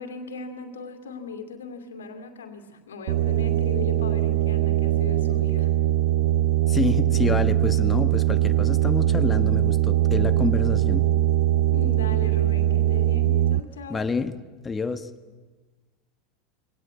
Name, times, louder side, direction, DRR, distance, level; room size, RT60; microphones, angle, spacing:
voice 1, 0.0-5.7 11.7-14.1, left 4 dB, 85° left, 6 dB, 2.5 m, -38 dB
sound 1, 3.1-13.6, right 13 dB, 65° right, 0.6 m, -21 dB
voice 2, 6.7-11.1 13.9-14.4 14.6-15.1, left 4 dB, 20° left, 9 dB, 1.4 m, -28 dB
22.5 x 18.0 x 8.6 m, 1.3 s
hypercardioid pair, 95°, 0 cm